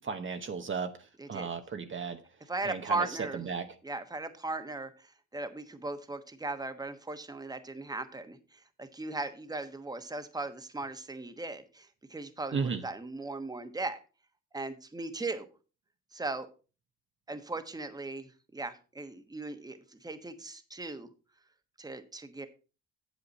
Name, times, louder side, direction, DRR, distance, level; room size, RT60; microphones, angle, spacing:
voice 1, 0.0-2.2 2.6-3.1 3.3-3.8 12.5-12.8, right 5 dB, 40° right, 1.0 m, -35 dB
voice 2, 2.5-3.5 3.8-14.0 14.5-15.5 16.1-16.5 17.3-21.1 21.8-22.5, right 2 dB, 10° right, 1.2 m, -38 dB
8.2 x 7.9 x 4.2 m
cardioid pair, 90°, 30 cm